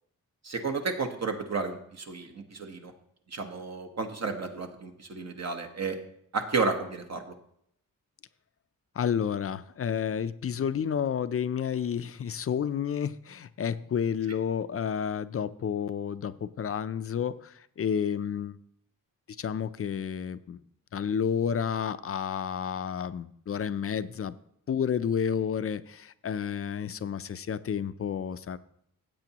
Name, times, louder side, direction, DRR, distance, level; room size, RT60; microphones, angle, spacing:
voice 1, 0.4-2.9 3.3-6.0 6.3-7.3, right 4 dB, 50° right, 4 dB, 1.1 m, -32 dB
voice 2, 9.0-17.5 17.8-18.6 19.4-20.6 20.9-24.3 24.7-28.6, left 8 dB, 45° left, 14 dB, 0.4 m, -30 dB
15.0 x 8.1 x 2.9 m, 0.72 s
wide cardioid pair, 120°, 34 cm